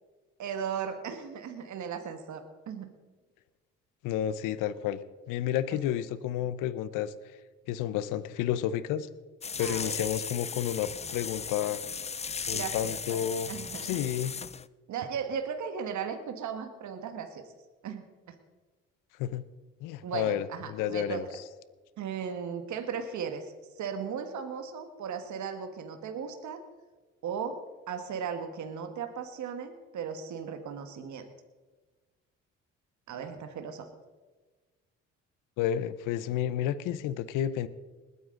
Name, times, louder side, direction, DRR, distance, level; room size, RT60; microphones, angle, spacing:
voice 1, 0.4-2.9 5.7-5.8 9.6-10.1 12.5-13.2 13.5-14.0 14.9-17.5 17.8-18.0 20.0-21.3 22.0-23.5 23.8-26.6 27.2-27.6 27.9-31.3 33.1-33.9, right 7 dB, 65° right, 7 dB, 1.5 m, -36 dB
voice 2, 4.0-5.0 5.3-7.1 7.7-9.1 9.6-11.8 12.5-13.5 13.8-14.3 19.2-19.4 19.8-21.3 35.6-37.7, left 10 dB, 85° left, 16 dB, 0.8 m, -31 dB
sound 1, 9.4-14.7, left 5 dB, 20° left, 0.5 m, -36 dB
20.5 x 9.5 x 3.8 m, 1.3 s
supercardioid pair, 65°, 31 cm